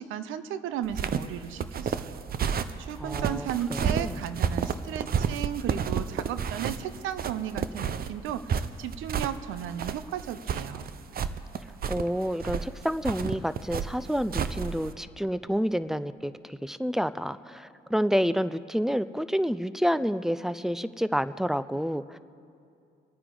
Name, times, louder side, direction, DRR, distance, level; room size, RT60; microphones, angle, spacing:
voice 1, 0.0-2.3 2.6-10.9, right 9 dB, 90° right, 13 dB, 0.6 m, -35 dB
sound 1, 0.9-14.9, right 7 dB, 50° right, 0.6 m, -31 dB
voice 2, 3.0-4.2 11.9-22.2, equal, ahead, 15 dB, 0.4 m, -29 dB
23.5 x 9.5 x 3.9 m, 2.5 s
cardioid pair, 90°, 20 cm